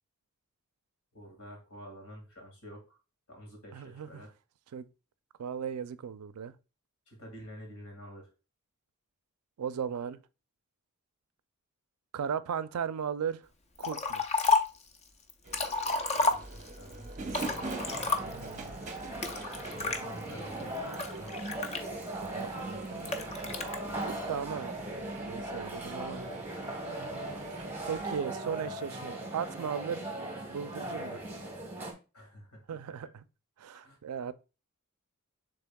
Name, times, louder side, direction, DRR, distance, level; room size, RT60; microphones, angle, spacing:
voice 1, 1.1-3.0 3.3-4.3 7.1-8.3 16.1-17.7 19.6-21.4 24.4-24.7 32.1-33.1 33.7-34.0, equal, 80° left, 2.0 m, -49 dB
voice 2, 3.7-4.2 4.7-4.9 5.4-6.5 9.6-10.2 12.1-13.5 13.8-14.2 18.2-18.8 22.1-23.2 24.1-24.7 25.2-26.3 27.9-30.0 30.5-31.2 32.7-33.1 33.6-34.3, right 7 dB, 80° right, 0.4 m, -37 dB
Liquid, 13.8-14.8 15.3-16.8 17.3-18.5 19.2-20.0 20.6-22.3 23.0-23.8, left 4 dB, 30° left, 0.6 m, -30 dB
sound 1, 15.4-28.2, right 3 dB, 35° right, 0.8 m, -45 dB
sound 2, 17.4-31.9, right 1 dB, 10° right, 1.5 m, -39 dB
6.9 x 3.3 x 2.2 m
head